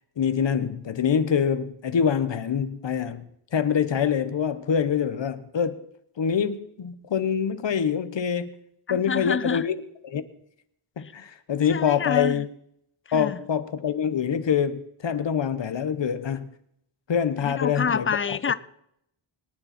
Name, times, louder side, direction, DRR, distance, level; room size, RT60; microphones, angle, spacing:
voice 1, 0.2-5.8 6.2-8.5 8.9-9.8 10.0-10.2 11.0-12.5 13.1-16.5 17.1-18.1, left 7 dB, 60° left, 1.1 m, -25 dB
voice 2, 8.9-9.7 11.0-11.1 11.7-12.4 13.1-13.4 17.4-18.5, left 6 dB, 25° left, 0.5 m, -28 dB
23.0 x 9.8 x 4.4 m
wide cardioid pair, 105°, 50 cm